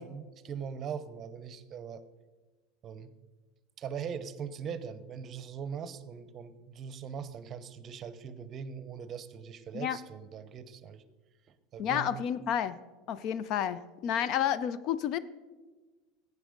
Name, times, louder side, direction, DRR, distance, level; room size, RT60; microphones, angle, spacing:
voice 1, 0.0-2.0 2.8-3.1 3.8-11.0 11.7-12.1, right 7 dB, 40° right, 13 dB, 0.8 m, -41 dB
voice 2, 11.8-12.8 13.1-15.2, left 9 dB, 55° left, 16 dB, 0.5 m, -30 dB
12.0 x 8.3 x 5.2 m, 1.3 s
supercardioid pair, 115°, 0 cm